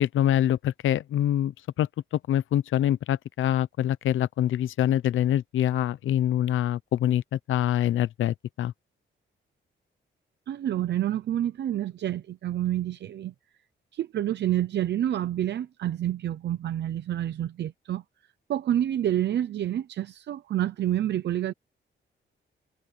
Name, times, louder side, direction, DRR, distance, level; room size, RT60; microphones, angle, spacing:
voice 1, 0.0-1.5 1.8-1.9 2.3-8.7, left 11 dB, 85° left, 0.7 m, -25 dB
voice 2, 10.5-13.3 13.9-18.0 18.5-21.5, right 11 dB, 60° right, 0.7 m, -28 dB
wide cardioid pair, 180°, 20 cm